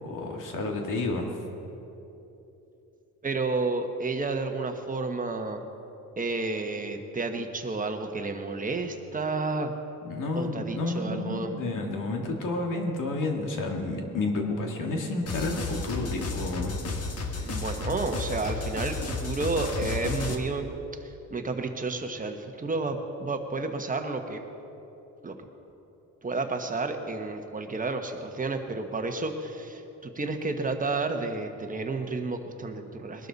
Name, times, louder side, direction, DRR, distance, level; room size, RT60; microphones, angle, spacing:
voice 1, 0.0-1.3 10.0-16.8, left 2 dB, 75° left, 2 dB, 2.1 m, -30 dB
voice 2, 3.2-5.6 6.2-9.7 10.3-11.5 17.4-20.7 21.3-24.4 25.2-25.3 26.2-33.3, right 3 dB, 25° right, 5 dB, 1.1 m, -31 dB
sound 1, 15.3-20.3, left 4 dB, 50° left, 1.4 m, -32 dB
21.0 x 12.0 x 4.1 m, 3.0 s
cardioid pair, 130°, 32 cm